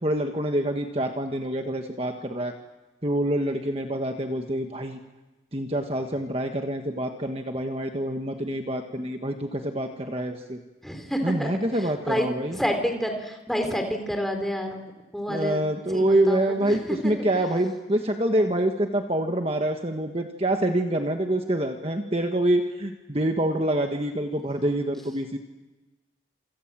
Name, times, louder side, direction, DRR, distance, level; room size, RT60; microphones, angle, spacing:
voice 1, 0.0-2.5 3.0-5.0 5.5-10.6 11.2-12.6 15.3-25.4, right 1 dB, 30° right, 4 dB, 1.5 m, -26 dB
voice 2, 10.8-15.6 15.9-17.1, equal, ahead, 4 dB, 3.6 m, -29 dB
27.5 x 26.5 x 7.5 m, 1.1 s
head